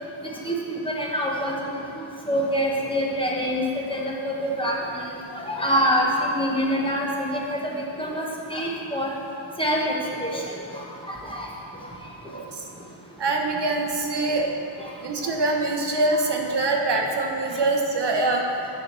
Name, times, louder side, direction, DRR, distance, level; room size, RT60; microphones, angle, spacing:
voice 1, 0.4-3.6 3.9-9.1 9.6-10.4 10.7-11.5 14.8-14.9 16.1-16.2, equal, 10° left, -3 dB, 1.2 m, -26 dB
voice 2, 12.3-12.6 13.2-14.5 15.0-18.6, right 2 dB, 55° right, 1 dB, 0.9 m, -24 dB
9.8 x 4.6 x 6.7 m, 2.5 s
wide cardioid pair, 135°, 48 cm